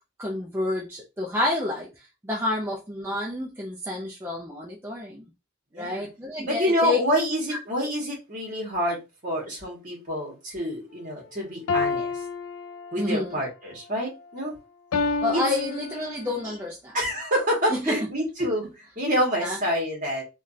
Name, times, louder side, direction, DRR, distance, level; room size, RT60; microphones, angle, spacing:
voice 1, 0.2-1.9 2.2-5.2 5.8-7.0 13.0-13.4 15.2-17.0 17.7-18.1 19.4-19.6, left 2 dB, 10° right, 0.4 m, -29 dB
voice 2, 5.7-6.1 6.5-12.1 12.9-14.5 15.3-15.4 16.4-16.6 16.9-20.2, equal, 35° right, 1.3 m, -27 dB
sound 1, 11.7-13.2 14.9-16.4, left 4 dB, 65° left, 0.3 m, -29 dB
3.5 x 2.3 x 2.6 m
head